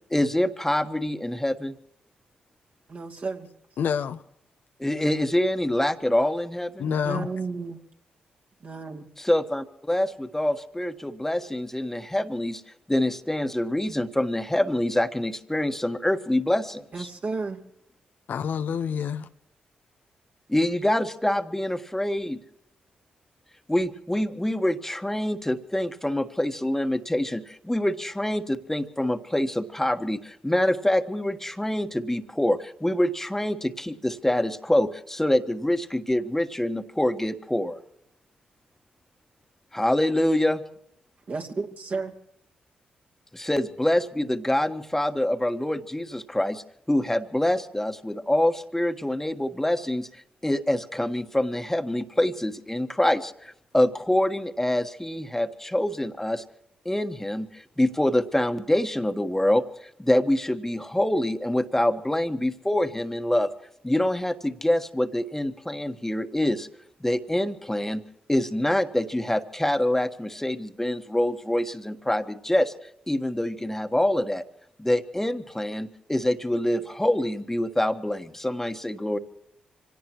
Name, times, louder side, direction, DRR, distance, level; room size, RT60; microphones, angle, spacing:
voice 1, 0.1-1.7 4.8-6.9 9.2-12.6 12.9-17.1 20.5-22.4 23.7-37.8 39.7-40.6 43.3-50.1 50.4-56.4 56.8-63.5 63.8-66.7 67.0-68.0 68.3-72.7 73.1-74.4 74.8-79.2, left 1 dB, 10° left, 1.5 m, -25 dB
voice 2, 2.9-3.5 6.8-7.8 8.6-9.1 16.9-17.6 41.3-42.1, right 4 dB, 55° right, 2.6 m, -32 dB
voice 3, 3.8-4.2 6.8-7.3 18.3-19.3, left 7 dB, 70° left, 0.8 m, -27 dB
25.5 x 17.5 x 3.1 m
hypercardioid pair, 45°, 3 cm